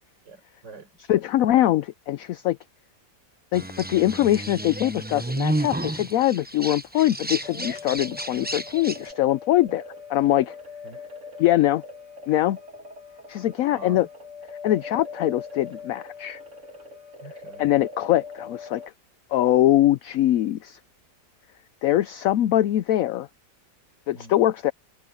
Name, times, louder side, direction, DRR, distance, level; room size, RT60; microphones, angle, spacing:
voice 1, 0.3-0.9 10.8-11.0 13.4-14.1 17.2-17.7 24.1-24.3, right 2 dB, 85° right, 6.3 m, -44 dB
voice 2, 1.1-2.6 3.5-9.8 10.1-10.5 11.4-11.8 12.3-12.6 13.3-14.1 14.6-16.4 17.6-18.8 19.3-20.8 21.8-23.3 24.1-24.7, left 14 dB, 70° left, 0.8 m, -22 dB
sound 1, 3.5-9.1, right 1 dB, 10° right, 0.5 m, -31 dB
sound 2, 7.4-18.9, left 4 dB, 45° right, 2.6 m, -41 dB
omnidirectional pair, 1.9 m